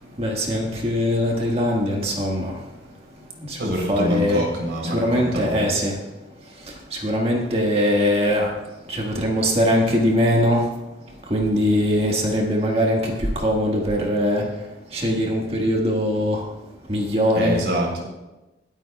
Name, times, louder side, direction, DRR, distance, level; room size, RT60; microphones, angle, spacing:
voice 1, 0.2-2.5 3.5-4.4 4.8-5.9 7.0-8.5 8.9-10.6 11.3-14.4 14.9-16.4 16.9-17.6, equal, 35° right, -1 dB, 1.6 m, -21 dB
voice 2, 3.6-5.7 17.3-18.0, equal, 70° right, 0 dB, 3.6 m, -25 dB
22.5 x 9.0 x 2.3 m, 1.1 s
head